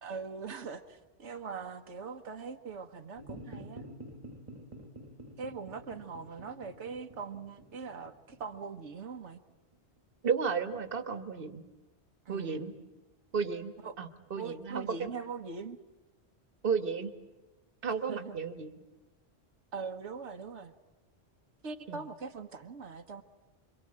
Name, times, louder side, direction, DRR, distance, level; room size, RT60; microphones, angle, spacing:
voice 1, 0.0-3.8 5.4-9.4 12.2-12.7 13.8-13.9 14.3-15.8 18.1-18.4 19.7-20.7 21.6-23.2, right 5 dB, 90° right, 5 dB, 1.5 m, -41 dB
sound 1, 3.2-9.7, right 1 dB, 30° right, 1.5 m, -49 dB
voice 2, 10.2-11.6 12.3-12.7 13.3-13.7 14.0-15.1 16.6-17.1 17.8-18.7 21.9-22.0, right 5 dB, 55° right, 9 dB, 1.5 m, -33 dB
26.5 x 24.0 x 8.7 m, 1.1 s
omnidirectional pair, 1.1 m